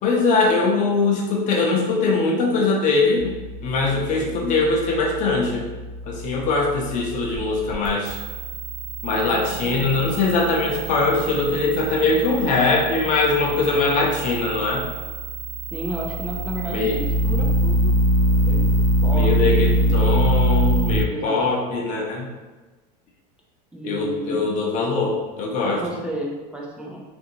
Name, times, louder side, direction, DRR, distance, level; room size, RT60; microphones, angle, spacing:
voice 1, 0.0-3.3 3.6-5.7 6.0-8.2 9.0-14.9 16.7-17.0 19.1-22.3 23.8-25.8, left 3 dB, 35° left, -1 dB, 0.7 m, -21 dB
sound 1, 3.2-21.0, right 1 dB, 90° right, 0.5 m, -24 dB
voice 2, 15.7-18.0 18.4-18.7 19.0-20.0 21.1-21.4 23.7-24.5 25.7-27.0, equal, 5° right, -3 dB, 0.3 m, -32 dB
2.7 x 2.6 x 2.7 m, 1.2 s
supercardioid pair, 135°, 21 cm